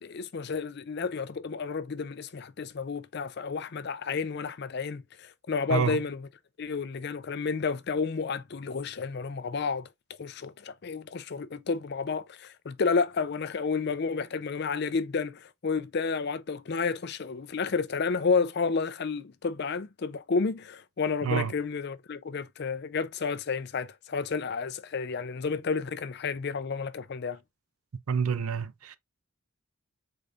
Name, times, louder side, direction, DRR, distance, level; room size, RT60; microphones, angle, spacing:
voice 1, 0.0-6.3 6.6-9.9 10.2-27.4, left 5 dB, 50° left, 0.5 m, -31 dB
voice 2, 28.1-29.0, right 6 dB, 85° right, 0.5 m, -28 dB
5.2 x 3.9 x 2.4 m
head